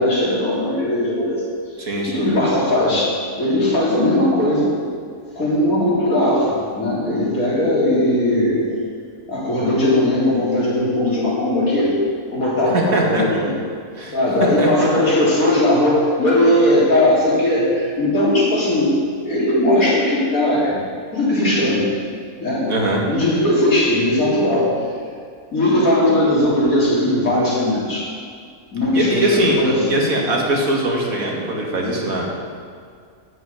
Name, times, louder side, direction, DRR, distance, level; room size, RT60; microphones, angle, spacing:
voice 1, 0.0-1.4 2.0-4.7 5.4-8.7 9.3-12.0 12.3-13.6 14.1-19.0 19.2-20.8 21.1-21.9 22.4-22.7 23.1-24.7 25.5-28.1 28.7-30.0, left 1 dB, 85° left, -6 dB, 3.9 m, -18 dB
voice 2, 1.8-2.2 12.9-13.2 14.0-14.2 14.6-14.9 22.7-23.0 28.9-29.6 29.9-32.3, right 1 dB, 80° right, -1 dB, 2.4 m, -21 dB
11.0 x 6.3 x 9.2 m, 2.2 s
omnidirectional pair, 1.4 m